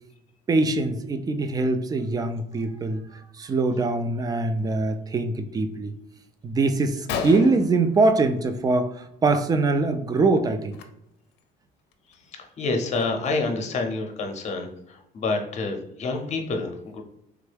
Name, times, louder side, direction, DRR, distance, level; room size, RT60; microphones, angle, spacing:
voice 1, 0.5-5.9 6.4-10.8, right 3 dB, 20° right, 8 dB, 0.3 m, -23 dB
Gunshot gunfire, 6.4-6.5 6.8-6.9 7.1-8.7 9.0-9.4 9.6-9.9 10.7-10.8 11.4-11.5 11.9-13.5, left 6 dB, 80° left, 0.4 m, -35 dB
voice 2, 12.6-17.0, left 3 dB, 40° left, 4 dB, 0.7 m, -28 dB
3.4 x 2.2 x 3.3 m, 0.78 s
cardioid pair, 110°, 17 cm